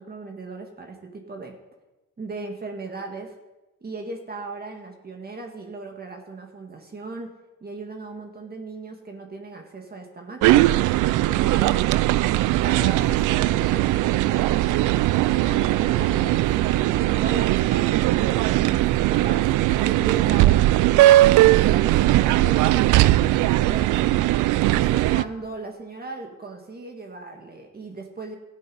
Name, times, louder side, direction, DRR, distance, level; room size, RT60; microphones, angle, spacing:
voice 1, 0.0-1.5 2.2-3.3 3.8-7.3 7.6-10.9 11.2-11.8 12.6-14.8 15.4-18.8 19.1-23.9 24.7-28.4, right 3 dB, 30° right, 3 dB, 1.8 m, -37 dB
sound 1, 10.4-25.2, right 16 dB, 85° right, 0.5 m, -19 dB
13.5 x 9.4 x 5.4 m, 1.1 s
cardioid pair, 90°, 30 cm